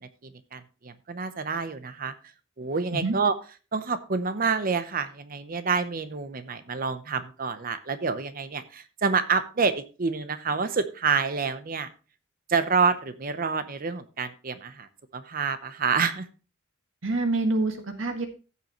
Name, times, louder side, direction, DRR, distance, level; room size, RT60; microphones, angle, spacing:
voice 1, 0.0-2.1 2.6-3.3 3.7-11.9 12.5-16.3, right 5 dB, 45° right, 12 dB, 0.8 m, -28 dB
voice 2, 17.0-18.3, right 2 dB, 75° right, 6 dB, 1.7 m, -26 dB
15.5 x 6.6 x 3.0 m, 0.34 s
head